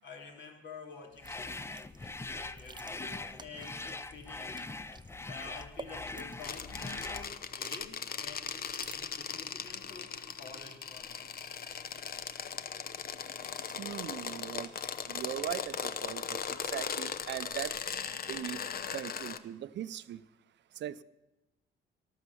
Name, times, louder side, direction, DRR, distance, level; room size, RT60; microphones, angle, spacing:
voice 1, 0.0-4.7 5.2-8.7 8.9-11.2, left 4 dB, 65° left, 2 dB, 3.2 m, -50 dB
sound 1, 1.1-19.0, right 4 dB, 20° right, 0.9 m, -55 dB
sound 2, 1.2-7.3, left 3 dB, 15° left, 0.5 m, -42 dB
sound 3, 6.4-19.4, left 7 dB, 50° left, 0.9 m, -39 dB
voice 2, 13.8-14.7 15.1-17.7 18.3-18.6 18.9-20.2 20.8-21.0, right 11 dB, 65° right, 15 dB, 0.6 m, -39 dB
13.5 x 12.5 x 7.0 m, 0.99 s
cardioid pair, 90°, 20 cm